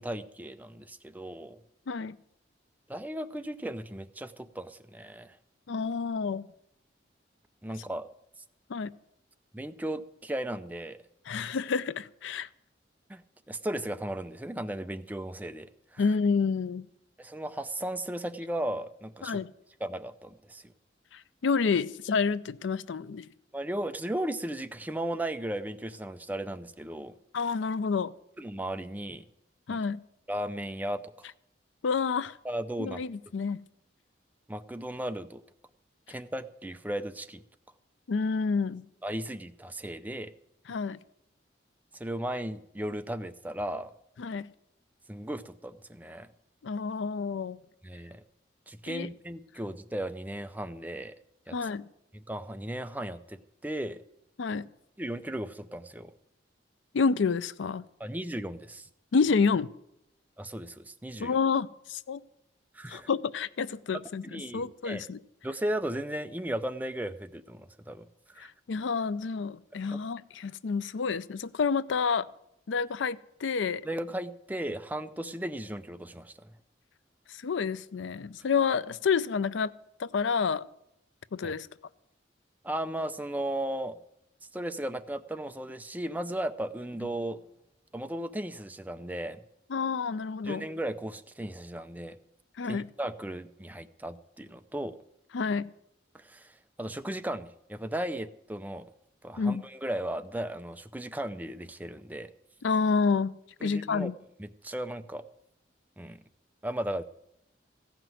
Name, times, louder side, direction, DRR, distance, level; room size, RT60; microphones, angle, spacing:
voice 1, 0.0-1.6 2.9-5.4 7.6-8.1 9.5-11.0 13.1-13.2 13.5-16.0 17.2-19.4 19.8-20.6 23.5-27.1 28.4-29.2 29.7-29.8 30.3-31.3 32.4-33.0 34.5-35.4 36.1-37.4 39.0-40.3 41.9-43.9 45.1-46.3 47.8-48.2 48.7-51.1 51.5-51.6 52.1-54.0 55.0-56.1 58.0-58.9 60.4-61.4 62.7-63.1 64.2-65.0 65.4-68.1 68.3-68.5 69.9-70.0 73.8-76.5 81.4-81.5 82.6-84.0 84.5-87.4 87.9-89.4 90.4-92.2 92.7-95.0 96.1-98.9 99.2-102.3 103.6-104.1 104.4-105.2 106.0-106.2 106.6-107.0, right 1 dB, 10° right, 0.4 m, -36 dB
voice 2, 5.7-6.5 8.7-8.9 11.3-12.5 16.0-16.9 19.2-19.5 21.1-23.3 27.3-28.1 29.7-30.0 31.8-32.4 32.8-33.6 38.1-38.9 40.7-41.0 44.2-44.5 46.6-47.6 48.9-49.1 51.5-51.9 54.4-54.7 56.9-57.8 59.1-59.7 61.2-62.2 62.9-65.2 68.4-72.3 72.7-73.8 77.3-79.7 80.0-80.6 81.3-81.7 89.7-90.7 92.6-92.9 95.3-95.7 99.4-99.6 102.6-103.3 103.6-104.1, left 5 dB, 85° left, 0.5 m, -29 dB
15.0 x 5.9 x 9.2 m
head